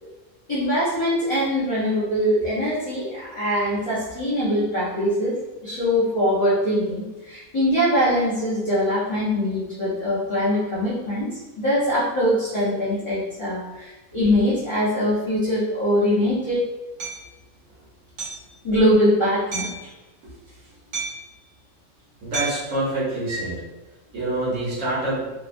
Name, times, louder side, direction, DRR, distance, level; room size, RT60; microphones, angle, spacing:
voice 1, 0.5-5.4 5.6-16.6 18.6-19.9, equal, 35° left, -11 dB, 0.5 m, -22 dB
Hammer, 17.0-17.2 18.2-18.5 19.5-19.9 20.9-21.3 22.3-22.7, right 4 dB, 50° right, 0.9 m, -31 dB
voice 2, 22.2-23.6 24.1-25.3, right 1 dB, 75° right, -8 dB, 1.3 m, -26 dB
2.8 x 2.2 x 2.5 m, 1.1 s
omnidirectional pair, 1.4 m